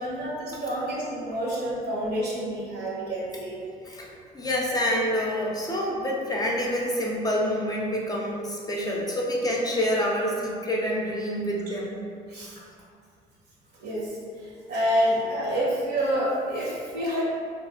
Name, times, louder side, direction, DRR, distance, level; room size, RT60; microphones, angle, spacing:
voice 1, 0.0-3.6 12.3-12.5 13.8-14.1 14.7-17.2, equal, 65° right, -6 dB, 0.9 m, -28 dB
voice 2, 3.8-11.9, equal, 20° left, -3 dB, 0.4 m, -27 dB
2.5 x 2.3 x 2.4 m, 2.3 s
supercardioid pair, 65°, 18 cm